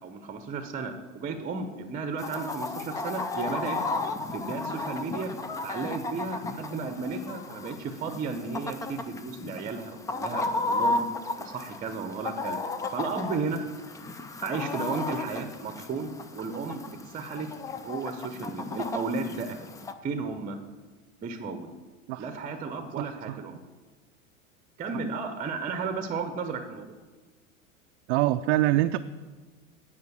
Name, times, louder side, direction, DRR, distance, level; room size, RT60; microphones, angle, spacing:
voice 1, 0.0-3.8 4.3-5.3 5.6-11.0 11.4-12.6 12.9-13.6 14.4-16.8 17.1-17.5 17.7-19.6 20.0-20.6 21.2-21.8 22.2-23.6 24.8-27.0, right 4 dB, 20° right, 7 dB, 0.8 m, -34 dB
Chicken rooster, 2.2-19.9, left 3 dB, 10° left, 0.3 m, -34 dB
voice 2, 23.0-23.4 28.1-29.0, right 15 dB, 55° right, 8 dB, 0.5 m, -25 dB
9.5 x 5.1 x 8.1 m, 1.4 s
hypercardioid pair, 110°, 40 cm